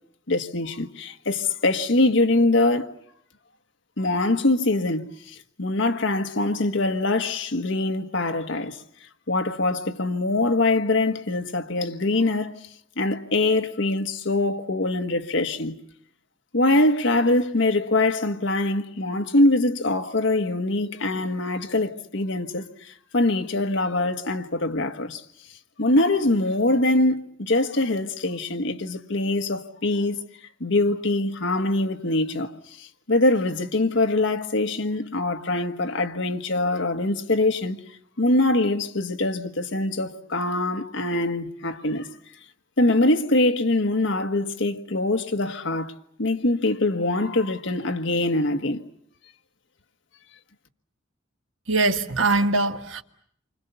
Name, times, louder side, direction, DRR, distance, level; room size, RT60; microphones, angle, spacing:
voice 1, 0.3-3.0 4.0-8.8 9.3-12.6 13.0-15.7 16.5-25.2 25.8-30.2 30.6-32.5 32.8-37.8 38.2-42.1 42.8-45.9 46.2-48.8, left 2 dB, 65° left, 1.5 m, -23 dB
voice 2, 51.7-53.0, right 3 dB, 70° right, 1.4 m, -22 dB
29.0 x 25.0 x 7.0 m
head